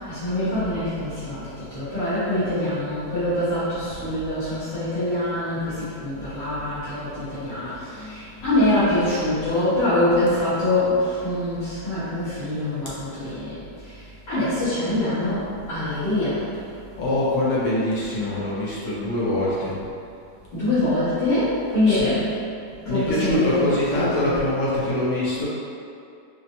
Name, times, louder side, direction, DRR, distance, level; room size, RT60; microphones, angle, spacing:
voice 1, 0.0-13.6 13.8-14.0 14.3-16.4 20.5-22.2 22.9-24.3, left 1 dB, 75° left, -19 dB, 2.2 m, -24 dB
voice 2, 17.0-19.7 21.9-22.2 22.9-25.5, left 1 dB, 60° left, -7 dB, 0.9 m, -24 dB
5.0 x 2.1 x 2.8 m, 2.5 s
omnidirectional pair, 1.8 m